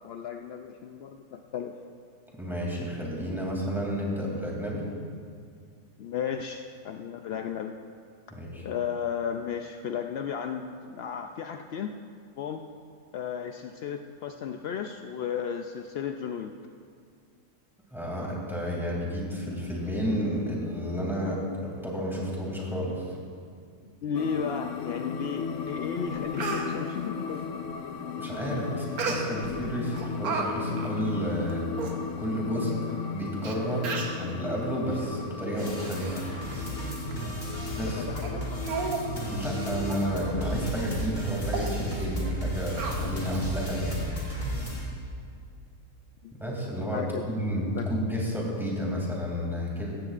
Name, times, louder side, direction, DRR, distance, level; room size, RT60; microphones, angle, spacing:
voice 1, 0.0-1.7 6.0-7.7 8.6-12.0 12.4-12.6 13.1-16.5 24.0-27.5 28.5-28.8 37.8-38.6 42.4-42.5 46.2-46.3 46.9-47.2 47.7-47.9, left 7 dB, 80° left, 5 dB, 0.5 m, -34 dB
voice 2, 2.3-4.8 8.3-8.6 17.9-23.2 28.2-31.7 32.2-36.3 37.6-38.1 39.3-44.0 46.4-50.0, equal, ahead, -4 dB, 2.6 m, -31 dB
sound 1, 24.1-40.7, left 6 dB, 60° left, 0.9 m, -36 dB
Speech, 25.7-25.8 26.1-26.7 29.0-29.5 29.9-30.5 30.8-30.9 31.5-31.6 31.8-31.9 32.7-32.8 33.4-33.5 33.8-34.2 34.9-35.1 35.5-36.2 36.5-36.7 37.1-37.2 37.7-37.9 38.2-38.3 38.6-39.0 39.4-39.5 39.9-40.1 40.4-40.6 41.0-41.1 41.5-41.7 42.8-43.4 43.8-43.9, right 4 dB, 80° right, 1.6 m, -34 dB
sound 2, 35.6-44.8, equal, 40° left, 2.6 m, -34 dB
16.5 x 14.0 x 2.5 m, 2.2 s
omnidirectional pair, 1.6 m